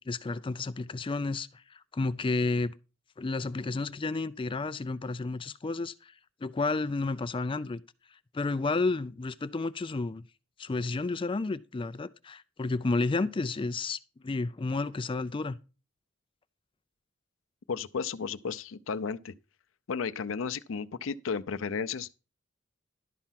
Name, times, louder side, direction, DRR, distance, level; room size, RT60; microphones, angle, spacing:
voice 1, 0.0-2.7 3.2-6.1 6.4-7.8 8.3-10.2 10.6-15.6, left 3 dB, 25° left, 0.4 m, -31 dB
voice 2, 17.7-19.3 19.9-22.2, left 5 dB, 75° left, 0.5 m, -33 dB
12.0 x 4.6 x 5.7 m
head